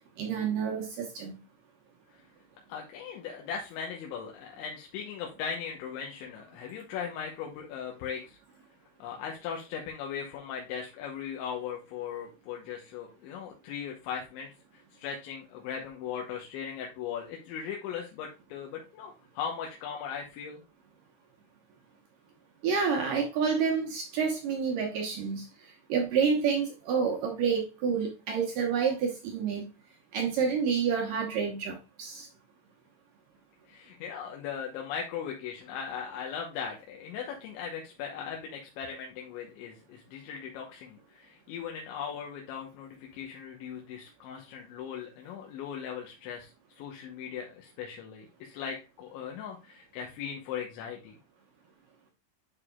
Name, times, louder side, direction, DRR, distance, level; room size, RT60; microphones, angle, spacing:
voice 1, 0.2-1.4 22.6-25.5 25.9-29.7 30.1-32.3, right 6 dB, 70° right, 2 dB, 2.1 m, -28 dB
voice 2, 2.7-8.4 9.0-20.6 33.7-46.5 46.8-51.2, left 7 dB, 85° left, 1 dB, 3.3 m, -38 dB
10.5 x 4.9 x 2.3 m, 0.28 s
omnidirectional pair, 5.1 m